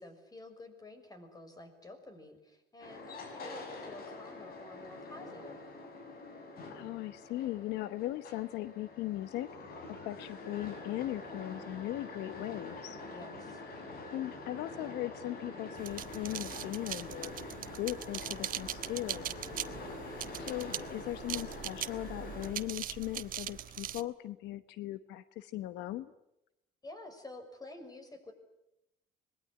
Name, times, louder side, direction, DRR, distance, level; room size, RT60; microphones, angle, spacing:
voice 1, 0.0-5.6 13.1-13.6 19.4-20.0 26.8-28.3, left 2 dB, 20° left, 8 dB, 6.2 m, -50 dB
sound 1, 2.8-22.5, left 2 dB, 60° left, 6.4 m, -46 dB
voice 2, 6.7-9.7 10.0-13.0 14.1-19.4 20.4-26.1, left 15 dB, 85° left, 14 dB, 1.0 m, -39 dB
sound 2, 15.8-24.0, right 11 dB, 55° right, 1.2 m, -41 dB
26.0 x 21.5 x 10.0 m, 0.87 s
cardioid pair, 110°, 17 cm